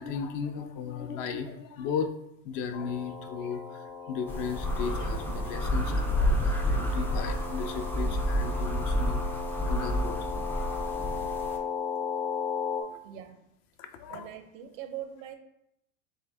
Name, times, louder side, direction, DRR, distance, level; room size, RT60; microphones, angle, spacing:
voice 1, 0.0-2.1 2.4-10.2 12.9-13.0 13.8-14.3, left 6 dB, 55° left, 7 dB, 0.6 m, -36 dB
sound 1, 2.7-12.8, left 6 dB, 90° left, 0.9 m, -37 dB
sound 2, 4.3-11.6, equal, 5° left, 0.3 m, -29 dB
voice 2, 13.0-13.4 14.1-15.3, right 10 dB, 75° right, 8 dB, 0.7 m, -41 dB
3.8 x 3.5 x 3.4 m, 0.78 s
supercardioid pair, 110°, 41 cm